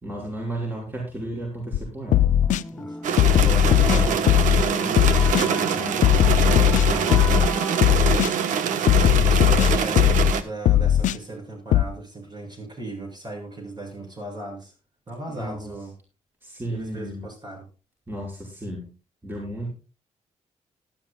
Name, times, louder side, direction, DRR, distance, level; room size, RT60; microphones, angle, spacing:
voice 1, 0.0-2.3 3.4-6.2 6.8-7.5 15.3-15.7 16.4-17.3 18.1-18.9 19.2-19.7, right 1 dB, 15° right, -3 dB, 5.7 m, -34 dB
sound 1, 1.7-1.8 2.1-2.6 3.2-4.6 5.0-5.5 6.0-7.5 7.8-8.3 8.9-10.3 10.7-11.2 11.7-11.8, left 11 dB, 80° left, 0.5 m, -18 dB
sound 2, 2.1-9.1, left 2 dB, 10° left, 1.1 m, -38 dB
voice 2, 2.7-4.2 9.2-14.7 15.1-15.9 16.7-17.7, right 2 dB, 35° right, 1 dB, 7.3 m, -37 dB
sound 3, 3.0-10.4, right 7 dB, 90° right, 1.2 m, -24 dB
18.0 x 12.0 x 2.3 m, 0.33 s
cardioid pair, 95°, 13 cm